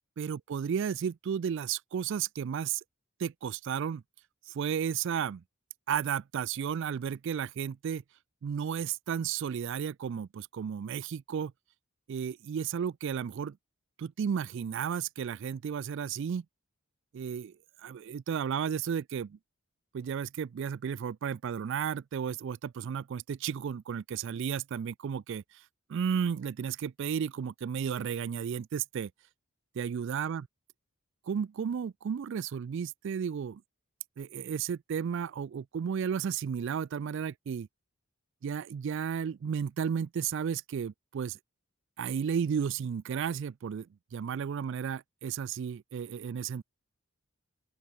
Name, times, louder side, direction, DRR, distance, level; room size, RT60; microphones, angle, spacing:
voice 1, 0.2-2.8 3.2-4.0 4.5-5.4 5.9-8.0 8.4-11.5 12.1-13.6 14.0-16.4 17.1-17.5 17.8-19.4 19.9-25.6 25.9-29.1 29.8-30.5 31.3-33.6 34.2-37.7 38.4-41.4 42.0-43.9 44.1-46.6, right 7 dB, 60° right, 0.3 m, -33 dB
open air
head